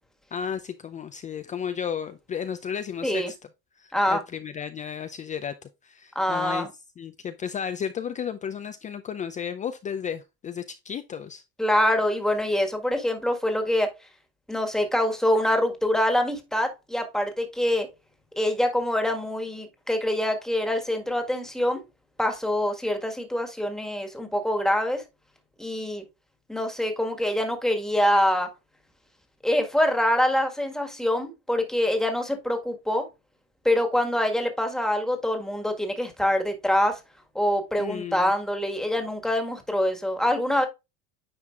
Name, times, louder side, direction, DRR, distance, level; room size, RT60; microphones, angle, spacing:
voice 1, 0.3-3.4 3.8-5.5 5.8-6.7 7.0-11.4 37.8-38.3, left 7 dB, 25° left, 0.5 m, -33 dB
voice 2, 6.1-6.7 11.6-13.9 14.5-17.9 18.4-21.8 22.2-25.0 25.6-26.0 26.5-28.5 29.4-33.1 33.6-37.0 37.3-40.7, left 1 dB, ahead, 1.6 m, -25 dB
9.5 x 4.5 x 2.4 m
supercardioid pair, 115°, 31 cm